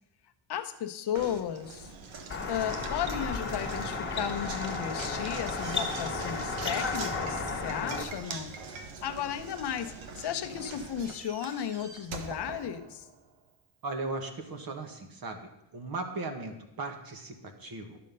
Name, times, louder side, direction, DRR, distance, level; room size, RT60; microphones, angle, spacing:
voice 1, 0.5-1.9 2.5-8.5 9.0-13.1, left 9 dB, 55° left, 9 dB, 0.8 m, -34 dB
Knock, 1.1-13.3, right 4 dB, 70° right, 1.3 m, -43 dB
sound 1, 2.3-8.0, left 4 dB, 25° left, 1.3 m, -33 dB
voice 2, 13.8-18.0, right 3 dB, 45° right, 5 dB, 1.5 m, -37 dB
11.5 x 6.7 x 5.3 m, 0.89 s
cardioid pair, 130°, 49 cm